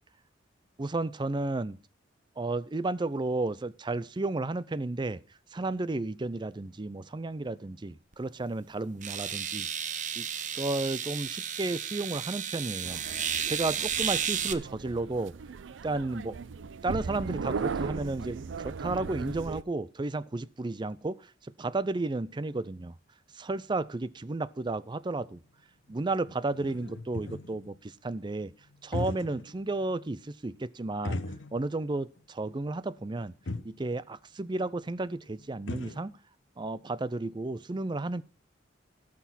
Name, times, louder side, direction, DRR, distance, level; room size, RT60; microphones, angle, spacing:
voice 1, 0.8-1.8 2.4-5.2 5.5-9.7 10.2-10.3 10.6-13.0 13.5-15.3 15.8-16.4 16.8-22.9 23.3-25.4 25.9-28.5 28.8-31.2 31.5-33.3 33.6-36.2 36.6-38.2, right 2 dB, 25° right, 0.5 m, -33 dB
sound 1, 8.1-8.2 9.0-14.5, right 8 dB, 40° right, 0.8 m, -33 dB
sound 2, 12.8-19.6, right 5 dB, 75° right, 0.5 m, -37 dB
sound 3, 24.7-24.8 25.1-25.2 25.9-26.0 26.2-27.7 28.7-29.6 29.9-30.0 31.0-31.9 32.2-32.3 33.1-33.2 33.4-33.8 35.1-35.2 35.4-36.0, left 2 dB, 90° left, 1.0 m, -37 dB
17.5 x 6.0 x 4.2 m
head